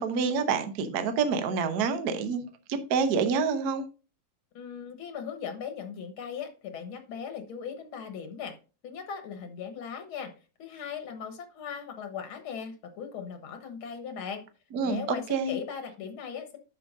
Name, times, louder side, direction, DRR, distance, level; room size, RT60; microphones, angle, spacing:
voice 1, 0.0-2.4 2.7-3.9 14.7-15.0 15.3-15.5, right 5 dB, 60° right, 1.3 m, -27 dB
voice 2, 4.5-8.6 8.8-10.3 10.6-14.4 14.8-16.6, left 7 dB, 90° left, 2.2 m, -38 dB
10.0 x 6.8 x 2.6 m
omnidirectional pair, 2.3 m